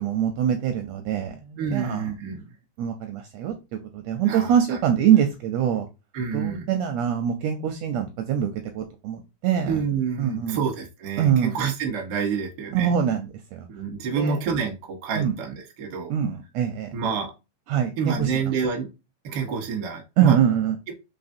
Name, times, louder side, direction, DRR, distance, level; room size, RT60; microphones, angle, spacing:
voice 1, 0.0-2.1 2.8-3.5 3.9-5.9 6.3-9.8 10.2-10.6 11.2-11.5 12.7-13.7 14.1-14.4 15.2-15.3 16.1-16.9 17.7-18.4 20.2-20.7, right 9 dB, 80° right, 5 dB, 1.6 m, -24 dB
voice 2, 1.6-2.5 4.2-4.8 6.1-6.7 9.7-12.9 13.7-16.1 16.9-17.3 18.0-18.9 19.2-20.3 20.9-21.0, right 6 dB, 55° right, 1 dB, 1.3 m, -28 dB
4.8 x 3.8 x 2.6 m, 0.26 s
omnidirectional pair, 3.4 m